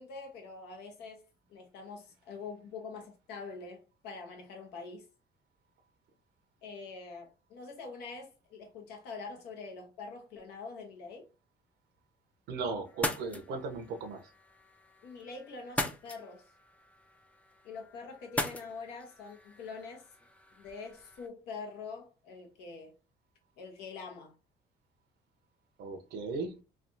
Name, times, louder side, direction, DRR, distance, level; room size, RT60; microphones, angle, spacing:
voice 1, 0.0-5.1 6.6-11.3 15.0-16.5 17.6-20.1 20.6-22.9 23.6-24.3, left 4 dB, 85° left, 1.0 m, -45 dB
voice 2, 12.5-14.2 25.8-26.6, right 4 dB, 75° right, 0.8 m, -37 dB
sound 1, 12.9-21.3, left 1 dB, 10° left, 0.4 m, -40 dB
3.3 x 2.4 x 2.6 m
cardioid pair, 110°, 17 cm